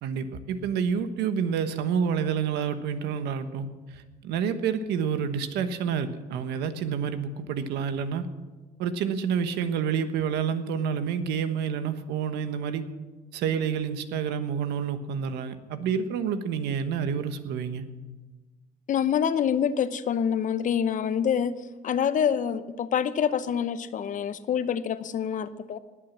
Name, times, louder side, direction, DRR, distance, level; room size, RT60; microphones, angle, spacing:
voice 1, 0.0-3.7 3.9-8.3 8.8-12.9 13.3-17.8, right 7 dB, 85° right, 10 dB, 1.3 m, -28 dB
voice 2, 18.9-21.5 21.8-25.8, left 8 dB, 50° left, 13 dB, 0.8 m, -26 dB
19.0 x 8.6 x 7.3 m, 1.2 s
cardioid pair, 110°, 17 cm